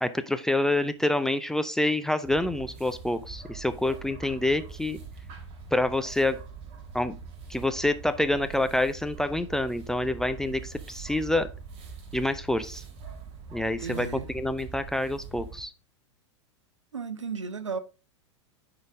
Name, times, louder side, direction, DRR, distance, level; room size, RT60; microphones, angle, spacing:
voice 1, 0.0-5.0 5.7-6.4 6.9-7.2 7.5-11.5 12.1-12.8 13.5-15.7, left 1 dB, 5° left, 0.3 m, -27 dB
sound 1, 2.2-15.6, right 5 dB, 35° right, 1.4 m, -43 dB
voice 2, 13.8-14.3 16.9-17.8, right 5 dB, 75° right, 0.7 m, -34 dB
10.5 x 3.8 x 3.5 m
figure-of-eight pair, 95°, 16 cm